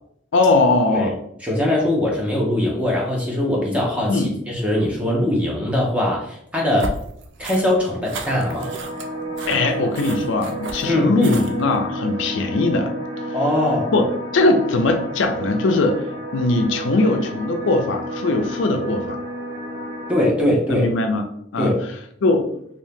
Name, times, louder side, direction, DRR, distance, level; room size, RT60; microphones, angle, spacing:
voice 1, 0.3-1.2 4.1-4.3 9.5-12.9 13.9-14.1 14.3-16.0 16.3-19.2 20.7-21.2 21.5-21.7 22.2-22.5, left 2 dB, 70° left, 5 dB, 0.4 m, -20 dB
voice 2, 1.4-6.9 7.4-8.7 10.9-11.3 13.3-13.9 20.1-20.9 21.6-21.8, left 1 dB, 5° right, -3 dB, 0.7 m, -21 dB
sound 1, 6.8-11.7, right 3 dB, 65° right, 0.5 m, -34 dB
sound 2, 8.3-20.3, right 1 dB, 85° right, 1.3 m, -31 dB
2.7 x 2.7 x 3.5 m, 0.71 s
head